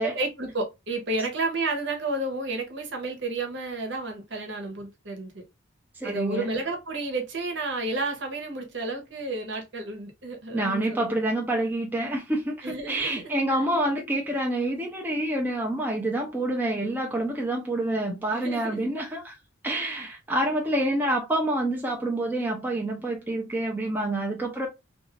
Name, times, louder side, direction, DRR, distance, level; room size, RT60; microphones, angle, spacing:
voice 1, 0.0-5.4 6.0-11.2 12.6-13.7 18.3-18.9, right 2 dB, 60° right, 0.9 m, -31 dB
voice 2, 6.0-6.5 10.5-19.3 19.6-24.7, right 1 dB, 10° right, 0.5 m, -27 dB
2.6 x 2.4 x 3.0 m
head